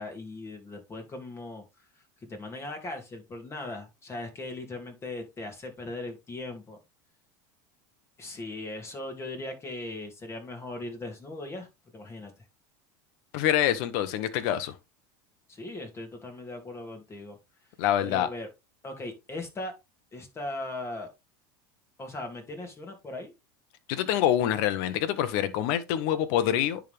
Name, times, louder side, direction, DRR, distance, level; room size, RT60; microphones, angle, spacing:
voice 1, 0.0-1.6 2.3-6.8 8.2-11.7 11.9-12.3 15.5-17.4 18.0-18.5 18.8-19.7 20.1-21.1 22.0-23.3, left 2 dB, 25° left, 2.7 m, -38 dB
voice 2, 13.3-14.7 17.8-18.3 23.9-26.8, left 11 dB, 65° left, 1.1 m, -26 dB
10.0 x 3.8 x 3.5 m
supercardioid pair, 115°, 12 cm